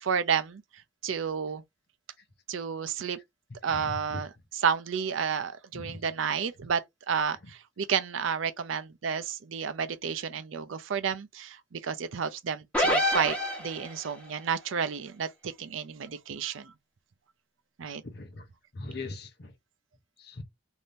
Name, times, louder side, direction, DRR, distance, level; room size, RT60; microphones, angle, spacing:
voice 1, 0.0-0.6 1.0-1.6 2.5-3.2 3.6-6.8 7.1-16.7 17.8-18.0, right 7 dB, 90° right, 0.5 m, -31 dB
voice 2, 3.7-4.2 5.7-6.0 18.0-18.4 18.7-19.5 20.2-20.4, left 2 dB, 55° left, 0.7 m, -40 dB
sound 1, 12.7-14.1, equal, 5° left, 1.2 m, -26 dB
2.7 x 2.7 x 3.3 m
head